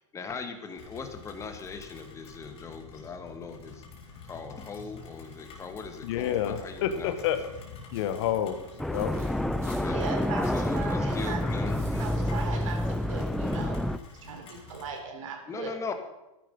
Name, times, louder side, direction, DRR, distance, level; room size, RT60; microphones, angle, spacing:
voice 1, 0.1-3.8 4.2-7.1 9.6-10.0 10.5-12.1 15.5-15.9, left 4 dB, 15° left, 6 dB, 1.7 m, -39 dB
Rain, 0.8-15.0, left 4 dB, 35° left, 4.0 m, -48 dB
voice 2, 6.0-7.5 7.9-9.1, left 10 dB, 55° left, 9 dB, 1.5 m, -29 dB
sound 1, 7.8-9.3 9.5-13.8, right 2 dB, 15° right, 5.5 m, -50 dB
sound 2, 8.8-14.0, left 1 dB, ahead, 0.4 m, -28 dB
voice 3, 9.7-15.7, right 5 dB, 75° right, 3 dB, 4.1 m, -39 dB
13.5 x 10.5 x 5.4 m, 0.96 s
hypercardioid pair, 135°, 17 cm